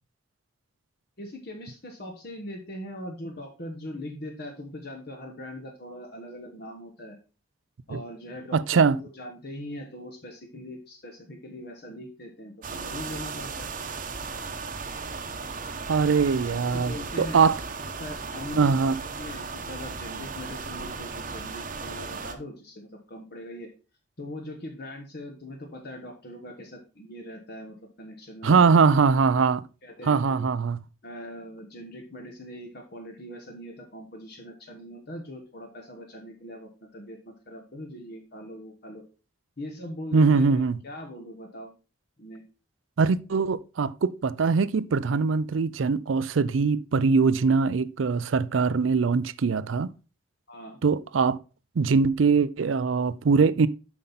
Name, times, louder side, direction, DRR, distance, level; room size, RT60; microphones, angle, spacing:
voice 1, 1.2-7.2 7.9-13.7 16.7-17.4 18.0-23.7 24.2-28.7 29.5-30.5 31.0-39.0 39.6-41.7 42.2-42.4 50.5-50.8, left 1 dB, 55° left, 1.3 m, -41 dB
voice 2, 8.5-9.0 15.9-17.6 18.6-19.0 28.4-29.6 30.1-30.8 40.1-40.8 43.0-49.9 50.8-51.4 51.8-53.7, right 5 dB, 85° right, 0.5 m, -22 dB
sound 1, 12.6-22.3, right 4 dB, 45° right, 0.9 m, -36 dB
7.6 x 5.5 x 4.0 m
head